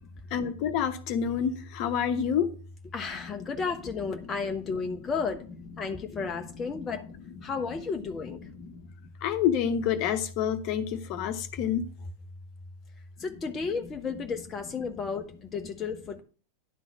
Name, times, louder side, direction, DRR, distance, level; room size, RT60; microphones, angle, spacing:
voice 1, 0.3-2.5 3.4-3.6 4.8-4.9 6.2-6.3 6.7-6.9 8.2-8.8 9.2-11.9, left 8 dB, 40° left, 1.0 m, -28 dB
voice 2, 2.9-5.5 5.8-7.1 7.4-8.4 13.2-16.2, left 5 dB, 20° left, 0.8 m, -33 dB
11.0 x 4.0 x 7.1 m
figure-of-eight pair, 90°, 0 cm